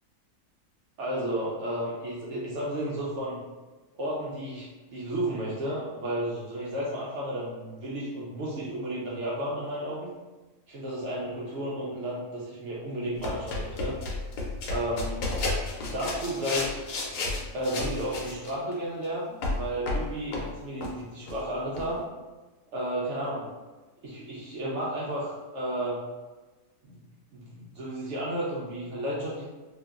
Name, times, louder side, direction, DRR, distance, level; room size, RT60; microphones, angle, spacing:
voice 1, 1.0-3.4 3.9-10.1 10.7-13.9 14.7-15.2 15.6-16.8 17.5-22.0 22.7-23.5 24.0-26.0 26.8-27.0 27.3-29.4, right 1 dB, 85° right, -6 dB, 0.6 m, -33 dB
sound 1, 13.2-18.7 19.4-20.5 20.8-20.9 21.3-21.4 21.7-21.9, left 2 dB, 75° left, 1.1 m, -32 dB
2.8 x 2.4 x 2.3 m, 1.2 s
omnidirectional pair, 1.8 m